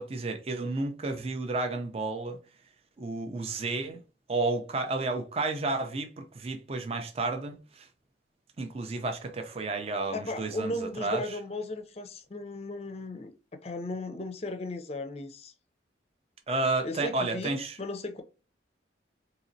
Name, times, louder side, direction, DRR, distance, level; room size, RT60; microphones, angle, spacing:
voice 1, 0.0-2.4 3.0-4.0 4.3-7.9 8.6-10.7 11.0-11.2 16.5-17.8, right 3 dB, 30° right, 0.4 m, -31 dB
voice 2, 10.1-13.3 13.6-15.5 16.8-18.2, left 2 dB, 35° left, 0.5 m, -36 dB
4.1 x 2.8 x 2.6 m
head